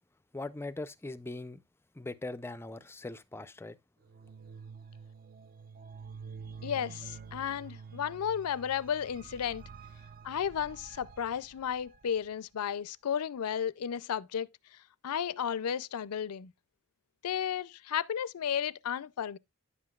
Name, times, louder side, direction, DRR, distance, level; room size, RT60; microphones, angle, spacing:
voice 1, 0.3-1.6 2.0-3.8, left 2 dB, 10° left, 0.4 m, -40 dB
sound 1, 4.0-12.3, right 5 dB, 40° right, 0.4 m, -48 dB
voice 2, 6.6-9.6 10.2-14.5 15.0-16.5 17.2-19.4, left 8 dB, 80° left, 0.4 m, -33 dB
10.0 x 7.7 x 2.3 m
head